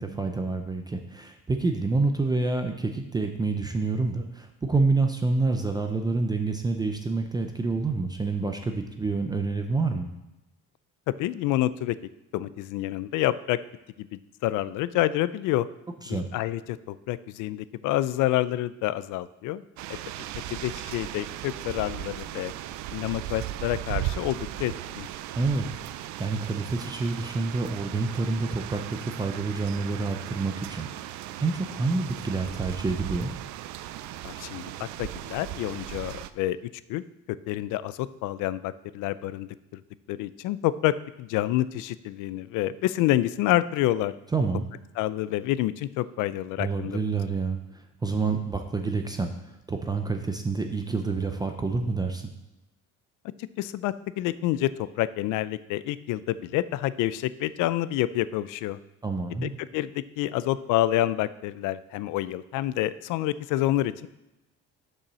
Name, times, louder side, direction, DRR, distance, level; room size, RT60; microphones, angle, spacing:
voice 1, 0.0-10.1 16.0-16.3 25.4-25.7 25.9-33.3 44.3-44.7 46.6-52.3 59.0-59.5, right 3 dB, 15° right, 5 dB, 0.4 m, -28 dB
voice 2, 11.1-12.0 12.3-13.6 14.0-15.7 16.1-19.6 19.9-20.0 20.5-22.5 22.9-25.1 34.2-37.0 37.5-39.8 40.1-44.1 45.0-47.0 53.6-58.8 59.4-64.1, left 14 dB, 80° left, 16 dB, 0.5 m, -28 dB
sound 1, 19.8-36.3, right 13 dB, 65° right, 0.4 m, -37 dB
7.0 x 5.4 x 6.1 m, 0.94 s
cardioid pair, 165°, 30 cm